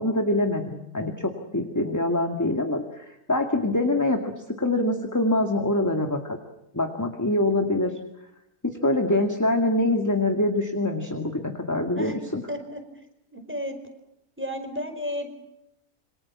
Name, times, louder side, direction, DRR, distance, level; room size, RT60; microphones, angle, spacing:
voice 1, 0.0-4.3 4.6-6.4 6.7-7.9 8.6-12.4, left 1 dB, 10° left, 4 dB, 2.1 m, -24 dB
voice 2, 12.5-12.8 13.3-13.8 14.4-15.3, equal, 5° right, 6 dB, 4.9 m, -32 dB
27.5 x 25.5 x 7.4 m, 0.83 s
omnidirectional pair, 1.6 m